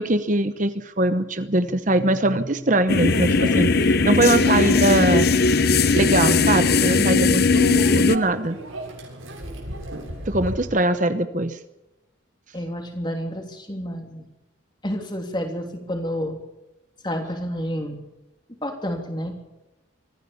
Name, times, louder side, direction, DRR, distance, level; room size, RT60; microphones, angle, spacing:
voice 1, 0.0-5.3 5.9-8.6 10.2-11.6, right 2 dB, 40° right, 10 dB, 1.0 m, -22 dB
sound 1, 2.9-8.2, left 4 dB, 50° left, 0.9 m, -18 dB
Microwave oven, 3.1-10.6, right 1 dB, 90° right, 7.4 m, -36 dB
voice 2, 7.0-7.3 12.5-14.3 14.8-16.4 17.0-18.0 18.6-19.3, equal, 20° left, 4 dB, 3.3 m, -29 dB
24.5 x 15.5 x 7.1 m, 1.0 s
head